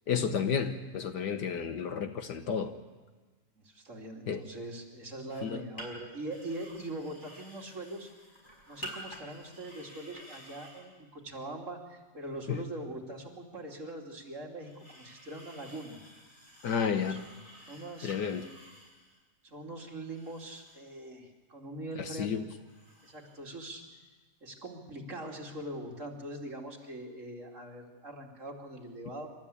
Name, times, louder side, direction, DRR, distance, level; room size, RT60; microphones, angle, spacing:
voice 1, 0.1-2.7 4.3-4.4 5.4-5.6 12.5-12.6 16.6-17.2 18.0-18.5 22.2-22.4, left 7 dB, 65° left, 8 dB, 1.6 m, -31 dB
voice 2, 3.6-8.1 8.7-16.0 16.9-17.2 17.7-18.4 19.4-22.3 23.0-23.8 24.4-29.3, right 1 dB, 40° right, -1 dB, 3.1 m, -42 dB
sound 1, 5.3-5.5 5.8-5.9 6.3-10.8 12.4-12.5 14.6-19.2 20.0-21.0 22.6-23.4 23.7-23.8, right 1 dB, 25° left, 5.0 m, -50 dB
27.5 x 13.5 x 8.5 m, 1.3 s
omnidirectional pair, 2.0 m